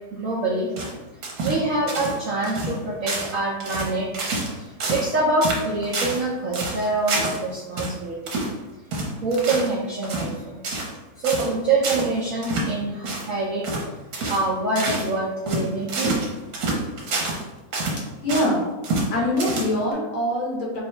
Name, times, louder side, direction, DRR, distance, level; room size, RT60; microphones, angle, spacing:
voice 1, 0.1-0.7 1.4-8.4 9.2-10.6 11.2-13.7 14.3-16.2, right 2 dB, 90° right, -4 dB, 0.7 m, -25 dB
sound 1, 0.8-2.2 2.4-2.8 3.1-3.4 3.6-4.5 4.8-5.1 5.4-6.2 6.5-7.4 7.8-7.9 8.3-8.5 8.9-9.7 10.0-10.3 10.6-11.0 11.2-11.5 11.8-12.1 12.4-12.7 13.0-13.3 13.6-13.9 14.1-14.5 14.8-15.1 15.5-17.4 17.7-18.5 18.8-19.1 19.4-19.9, right 2 dB, 55° right, 1.2 m, -27 dB
voice 2, 17.9-18.6 19.1-20.8, left 1 dB, 65° left, -3 dB, 1.8 m, -24 dB
5.0 x 2.6 x 3.2 m, 1.1 s
omnidirectional pair, 2.3 m